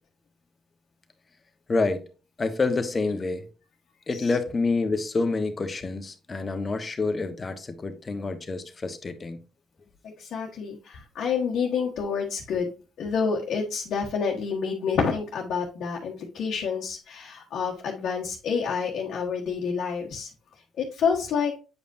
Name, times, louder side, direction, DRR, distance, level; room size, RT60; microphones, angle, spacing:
voice 1, 1.7-2.0 2.4-3.5 4.1-9.4, left 3 dB, 35° left, 1.3 m, -27 dB
voice 2, 10.2-12.7 13.0-20.3 20.8-21.5, left 6 dB, 65° left, 1.4 m, -28 dB
8.3 x 5.2 x 2.7 m
supercardioid pair, 60°, 0 cm